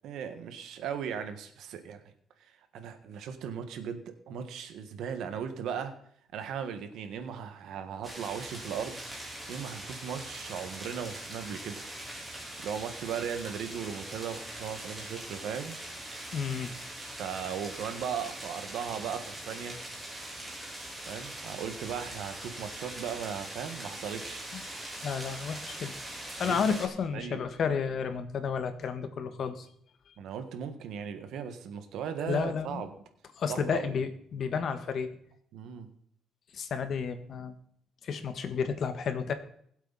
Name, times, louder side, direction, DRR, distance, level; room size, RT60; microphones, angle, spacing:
voice 1, 0.0-2.0 2.7-5.9 6.3-11.8 12.6-15.8 17.1-19.8 21.0-24.5 26.4-26.8 27.1-27.4 30.2-32.9 33.5-33.9 35.5-35.9, right 7 dB, 75° right, 8 dB, 1.5 m, -37 dB
sound 1, 8.0-26.9, right 1 dB, 5° right, 3.5 m, -42 dB
voice 2, 16.3-16.7 24.5-24.6 25.0-25.9 26.4-29.7 32.3-32.8 33.4-35.1 36.5-37.5 38.0-39.3, left 6 dB, 50° left, 9 dB, 1.4 m, -31 dB
20.5 x 8.1 x 4.1 m, 0.65 s
cardioid pair, 135°, 0 cm